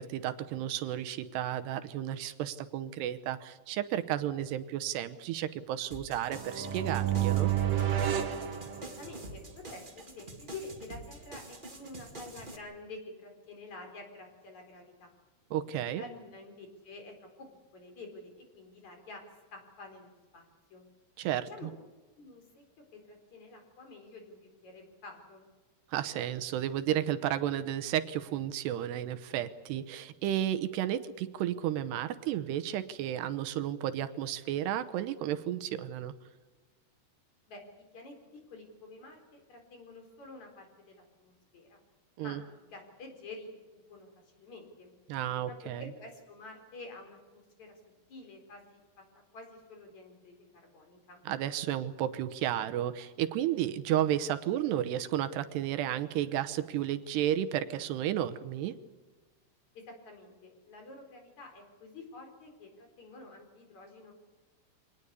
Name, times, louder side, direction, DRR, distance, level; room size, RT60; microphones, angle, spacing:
voice 1, 0.0-7.5 15.5-16.0 21.2-21.5 25.9-36.1 42.2-42.4 45.1-45.8 51.3-58.8, right 11 dB, 80° right, 10 dB, 3.0 m, -32 dB
sound 1, 5.9-12.6, right 2 dB, 25° right, 1.1 m, -47 dB
sound 2, 6.3-9.3, right 11 dB, 50° right, 2.1 m, -30 dB
voice 2, 8.8-15.2 16.0-19.2 19.5-20.9 21.5-21.7 22.2-22.6 23.1-25.4 37.5-37.6 37.9-41.8 42.2-44.9 45.5-47.8 48.1-49.0 49.3-50.4 50.6-51.2 59.9-64.1, left 2 dB, 45° left, 3 dB, 5.3 m, -49 dB
25.5 x 19.0 x 8.3 m, 1.3 s
omnidirectional pair, 4.9 m